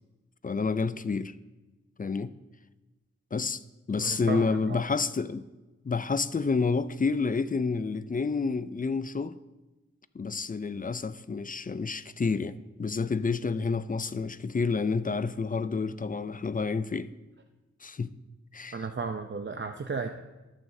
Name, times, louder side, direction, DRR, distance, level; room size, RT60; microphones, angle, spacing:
voice 1, 0.4-1.3 2.0-2.3 3.3-3.6 3.9-5.4 5.8-9.4 10.1-17.1 17.8-18.1 18.5-18.8, left 4 dB, 30° left, 0.4 m, -29 dB
voice 2, 4.0-4.9 18.7-20.1, right 4 dB, 40° right, 0.6 m, -34 dB
13.5 x 9.3 x 2.7 m
wide cardioid pair, 70°, 29 cm